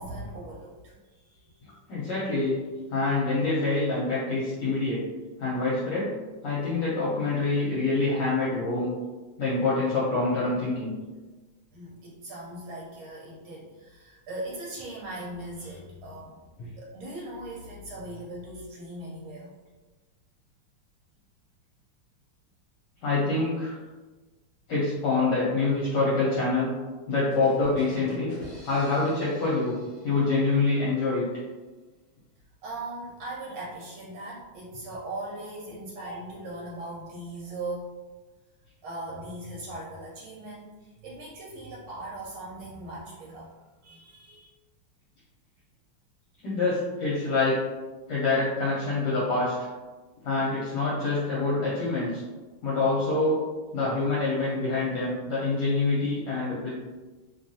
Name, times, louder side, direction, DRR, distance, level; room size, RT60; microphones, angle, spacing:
voice 1, 0.0-1.8 11.7-16.4 16.8-19.6 32.6-37.9 38.8-43.6 43.8-44.5, right 1 dB, 85° right, -4 dB, 1.4 m, -39 dB
voice 2, 1.9-2.6 2.9-5.0 5.4-6.1 6.4-8.9 9.4-10.9 16.6-16.7 23.0-23.7 24.7-26.7 27.1-28.3 28.6-29.8 30.0-31.3 46.4-47.6 48.1-49.7 50.2-52.2 52.6-53.4 53.7-56.7, left 3 dB, 70° left, -7 dB, 1.2 m, -26 dB
sound 1, 27.1-30.8, equal, 35° left, 0.5 m, -45 dB
3.1 x 2.3 x 2.6 m, 1.3 s
omnidirectional pair, 2.2 m